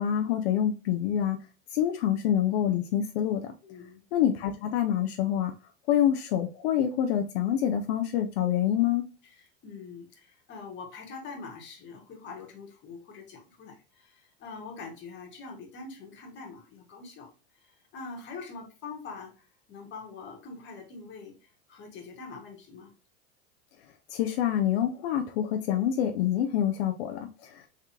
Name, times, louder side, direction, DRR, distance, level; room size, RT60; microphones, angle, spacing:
voice 1, 0.0-1.4 1.7-3.5 4.1-5.5 5.9-9.0 24.1-27.7, left 10 dB, 75° left, 0.6 m, -26 dB
voice 2, 3.6-4.0 9.2-22.9, left 4 dB, 35° left, 1.5 m, -44 dB
3.6 x 3.4 x 2.8 m
supercardioid pair, 135°, 31 cm